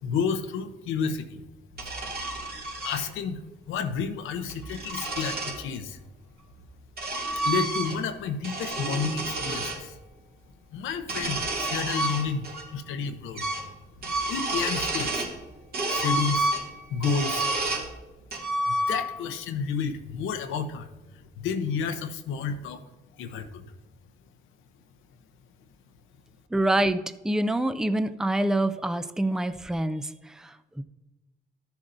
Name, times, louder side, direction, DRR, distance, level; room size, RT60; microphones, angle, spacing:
voice 1, 0.0-1.4 2.8-3.4 3.7-6.0 7.4-10.0 10.7-13.5 14.3-15.3 15.9-16.5 16.9-17.5 18.7-20.9 21.1-22.8 23.2-23.6, left 6 dB, 90° left, 7 dB, 0.8 m, -30 dB
sound 1, 1.7-3.0 4.3-5.6 6.5-8.1 8.4-9.8 11.0-12.6 12.9-13.0 13.4-13.7 14.0-15.4 15.7-17.9 18.3-19.3, right 2 dB, 50° right, 2.4 m, -30 dB
voice 2, 26.5-30.8, right 1 dB, 5° right, 11 dB, 0.5 m, -26 dB
13.5 x 7.0 x 2.6 m, 1.1 s
cardioid pair, 90°, 20 cm